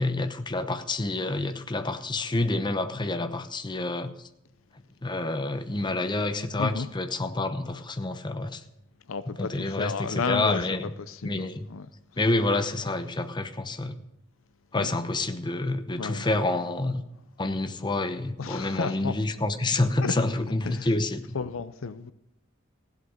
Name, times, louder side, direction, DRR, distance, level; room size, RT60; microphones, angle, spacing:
voice 1, 0.0-4.1 5.0-8.6 9.4-10.9 11.2-11.7 12.2-14.0 14.7-17.0 17.4-21.2, left 2 dB, 20° left, 0.9 m, -28 dB
voice 2, 9.1-10.6 11.0-11.9 14.7-14.9 16.0-16.3 18.4-19.1 20.0-20.1 20.6-20.9 21.3-22.1, left 5 dB, 75° left, 0.6 m, -32 dB
16.0 x 8.1 x 5.2 m
head